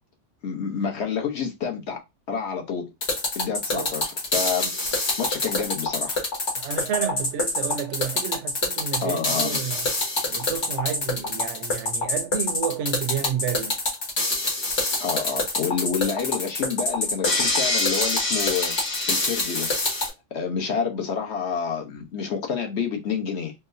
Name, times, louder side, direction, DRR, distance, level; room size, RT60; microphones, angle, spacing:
voice 1, 0.4-2.0 2.3-2.9 3.3-4.7 5.2-6.2 9.0-9.6 15.0-18.8 19.1-19.7 20.3-23.5, left 6 dB, 65° left, 1.1 m, -28 dB
sound 1, 3.0-20.1, left 2 dB, 80° left, 1.7 m, -25 dB
voice 2, 6.6-9.9 10.3-13.8, right 9 dB, 75° right, 0.9 m, -30 dB
4.3 x 2.0 x 2.6 m
omnidirectional pair, 1.2 m